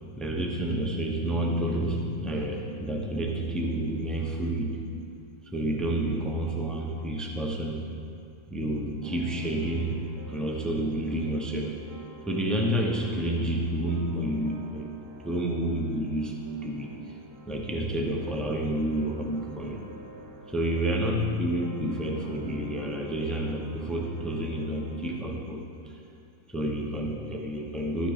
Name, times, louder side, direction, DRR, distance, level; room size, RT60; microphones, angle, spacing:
voice 1, 0.2-4.8 5.5-7.9 8.5-10.0 10.3-11.8 12.3-14.9 15.2-17.1 17.5-19.8 20.5-26.0 26.5-28.1, right 1 dB, ahead, 0 dB, 0.5 m, -29 dB
sound 1, 9.0-25.2, right 1 dB, 60° right, 1.3 m, -48 dB
13.0 x 6.1 x 4.1 m, 2.4 s
omnidirectional pair, 1.5 m